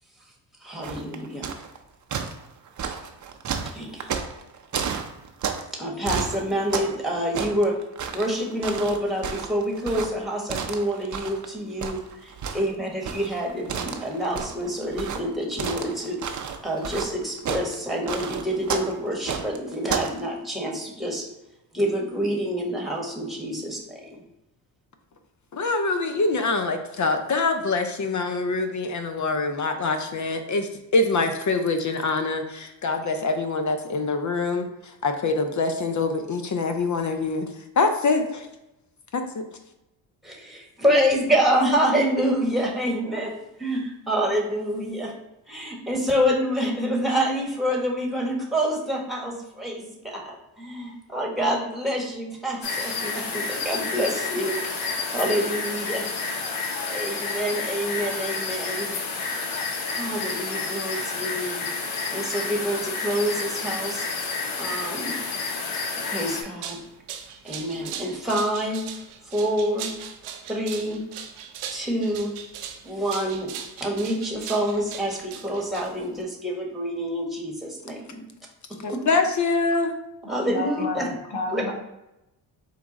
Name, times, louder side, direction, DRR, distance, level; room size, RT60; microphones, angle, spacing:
voice 1, 0.6-1.5 3.7-4.4 5.7-7.8 8.1-16.2 16.6-21.2 21.7-24.2 40.2-45.1 45.5-56.0 56.9-58.9 59.9-65.2 65.9-66.8 67.4-68.8 69.2-69.9 70.5-71.0 71.7-72.3 72.8-73.5 73.8-78.2 78.9-79.0 80.3-81.1 81.5-81.6, equal, ahead, -1 dB, 1.5 m, -27 dB
sound 1, 0.8-1.8 2.1-5.7 6.0-7.0 7.3-11.5 11.8-20.2, right 6 dB, 35° right, 0.6 m, -31 dB
voice 2, 25.5-34.7 35.0-37.5 37.8-38.5 39.1-39.4 78.8-79.9, left 3 dB, 35° left, 7 dB, 0.6 m, -24 dB
sound 2, 52.6-66.4, left 4 dB, 70° left, 0.9 m, -30 dB
sound 3, 66.4-76.2, right 8 dB, 80° right, 0.7 m, -39 dB
voice 3, 80.5-81.7, left 3 dB, 55° left, 1 dB, 1.2 m, -31 dB
4.3 x 2.5 x 3.9 m, 0.91 s
supercardioid pair, 60°, 50 cm